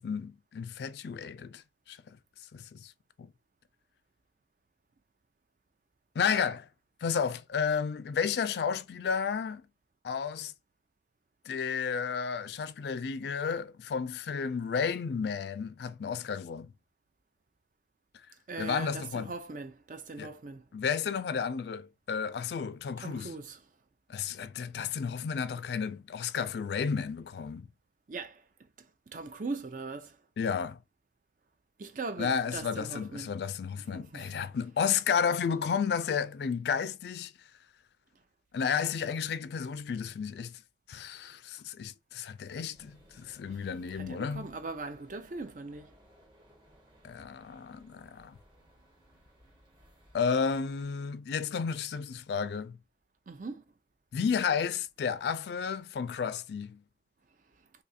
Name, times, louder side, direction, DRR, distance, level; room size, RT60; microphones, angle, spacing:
voice 1, 0.0-2.2 2.5-2.9 3.2-3.3 6.2-6.7 7.0-9.6 10.0-10.5 11.5-16.7 18.6-19.3 20.2-20.3 20.7-23.4 24.1-27.7 30.4-30.8 32.2-37.3 38.5-40.6 40.9-44.5 47.0-48.4 50.1-52.8 54.1-56.8, left 6 dB, 65° left, 0.3 m, -32 dB
voice 2, 18.5-20.6 23.0-23.6 28.1-28.4 29.1-30.2 31.8-33.3 33.9-34.2 43.9-45.9 53.3-53.6, right 3 dB, 45° right, 0.5 m, -40 dB
sound 1, 42.7-50.9, equal, 25° right, 1.2 m, -61 dB
2.8 x 2.4 x 4.1 m
head